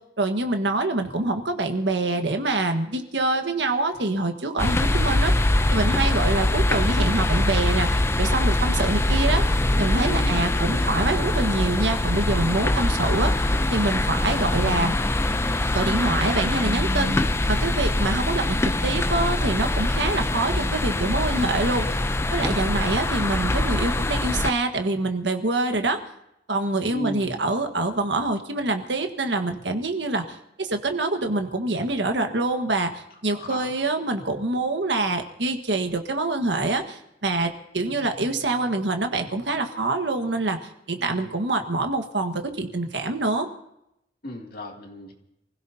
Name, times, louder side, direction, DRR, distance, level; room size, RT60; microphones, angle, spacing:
voice 1, 0.2-5.3 5.7-9.4 9.8-13.3 13.7-15.0 15.7-22.0 22.3-26.0 26.5-40.6 40.9-43.5, right 2 dB, 75° right, 5 dB, 1.5 m, -25 dB
sound 1, 4.6-24.5, left 1 dB, 15° left, 0.5 m, -23 dB
voice 2, 10.1-10.8 26.9-27.4 33.2-33.7 41.0-41.4 44.2-45.1, equal, 55° left, 1 dB, 2.6 m, -37 dB
28.5 x 16.5 x 2.8 m, 0.82 s
head